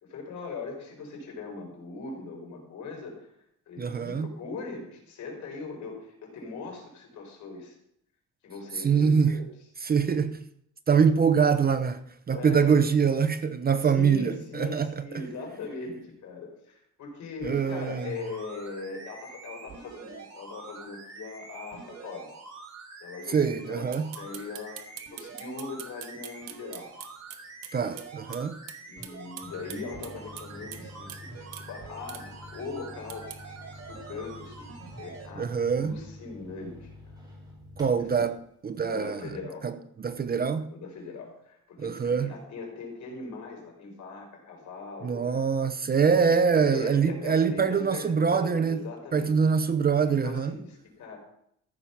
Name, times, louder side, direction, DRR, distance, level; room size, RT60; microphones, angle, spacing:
voice 1, 0.0-3.3 3.7-7.7 8.4-9.5 12.3-12.9 13.8-22.3 23.0-24.8 25.1-26.9 28.8-33.3 33.9-34.6 35.0-37.2 38.0-38.2 38.8-39.7 40.7-45.4 46.0-49.3 50.0-51.2, left 4 dB, 65° left, 4.9 m, -40 dB
voice 2, 3.8-4.3 8.8-9.4 9.8-10.4 10.9-15.0 17.4-18.1 23.3-24.1 27.7-28.6 35.4-35.9 37.8-38.4 38.6-39.3 39.6-39.7 40.0-40.7 41.8-42.3 45.0-48.8 49.1-50.5, right 6 dB, 30° right, 0.7 m, -24 dB
sound 1, 17.4-35.3 35.9-36.0, right 4 dB, 55° right, 4.3 m, -46 dB
sound 2, 23.9-28.1 28.3-28.4 28.7-28.8 29.0-30.8 31.1-31.2 31.5-31.7 32.1-32.2 33.1-33.4, right 11 dB, 85° right, 1.3 m, -42 dB
sound 3, 29.4-38.3, left 1 dB, 15° right, 4.5 m, -48 dB
14.5 x 6.9 x 5.9 m
cardioid pair, 125°, 31 cm